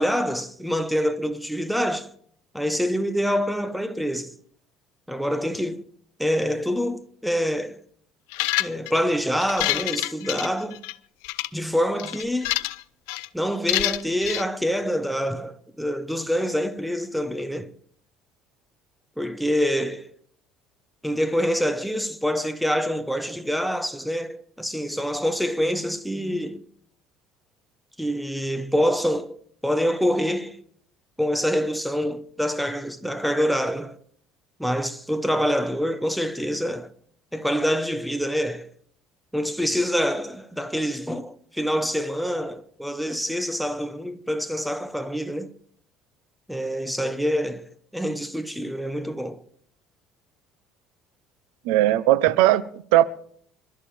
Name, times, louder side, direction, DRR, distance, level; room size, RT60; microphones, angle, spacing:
voice 1, 0.0-2.1 2.5-4.3 5.1-5.8 6.2-7.8 8.6-10.8 11.5-12.5 13.3-17.7 19.2-20.1 21.0-26.6 28.0-29.4 29.6-30.6 31.2-34.0 34.6-36.9 37.3-38.7 39.3-45.5 46.5-47.7 47.9-49.4, equal, ahead, 1.0 m, -26 dB
sound 1, 8.3-9.0 9.4-10.9 11.2-11.5 12.0-12.8 13.1-13.3 13.7-14.4, left 20 dB, 90° left, 0.5 m, -27 dB
voice 2, 51.6-53.0, right 14 dB, 90° right, 0.7 m, -18 dB
26.0 x 12.5 x 3.4 m
cardioid pair, 115°, 0 cm